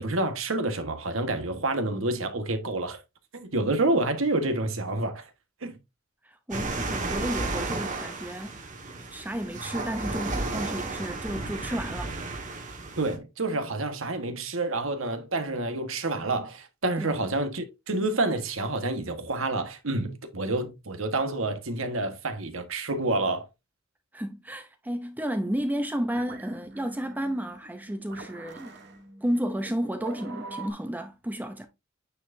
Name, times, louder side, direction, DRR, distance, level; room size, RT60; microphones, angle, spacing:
voice 1, 0.0-3.0 3.3-5.3 5.6-5.8 13.0-23.5, right 2 dB, 75° right, 1.4 m, -28 dB
voice 2, 6.2-8.6 9.0-12.3 17.0-17.1 24.1-28.8 29.2-31.7, equal, 10° right, 0.6 m, -32 dB
sound 1, 6.5-13.2, right 3 dB, 40° right, 1.6 m, -33 dB
sound 2, 25.5-30.7, right 3 dB, 60° right, 1.4 m, -45 dB
9.2 x 4.7 x 2.6 m
head